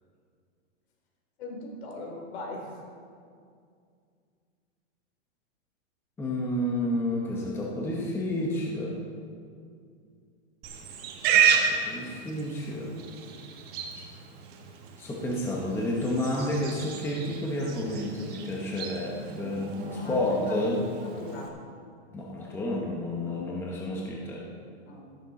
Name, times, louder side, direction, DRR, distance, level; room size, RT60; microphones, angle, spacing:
voice 1, 1.4-2.8 19.9-20.7 21.0-21.5 24.9-25.0, left 2 dB, 65° left, 1 dB, 3.4 m, -40 dB
voice 2, 6.2-9.0 11.3-12.9 15.0-20.8 22.1-24.4, left 1 dB, 5° left, -2 dB, 1.0 m, -30 dB
Livestock farm animals working animals, 10.6-21.5, right 7 dB, 25° right, 1.3 m, -31 dB
13.5 x 11.5 x 4.2 m, 2.3 s
supercardioid pair, 155°, 35 cm